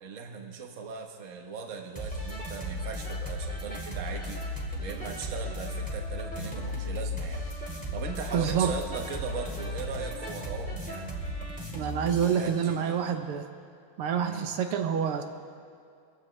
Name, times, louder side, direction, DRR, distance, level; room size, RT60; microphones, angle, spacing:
voice 1, 0.0-4.4 4.8-7.5 7.9-11.8 12.2-13.2 14.2-14.6, right 6 dB, 40° right, 3 dB, 1.3 m, -39 dB
sound 1, 2.0-12.5, left 1 dB, 5° left, 1.9 m, -35 dB
voice 2, 8.3-8.7 11.7-13.5 14.0-15.2, right 8 dB, 80° right, 6 dB, 1.8 m, -27 dB
23.0 x 15.0 x 3.2 m, 2.2 s
omnidirectional pair, 2.4 m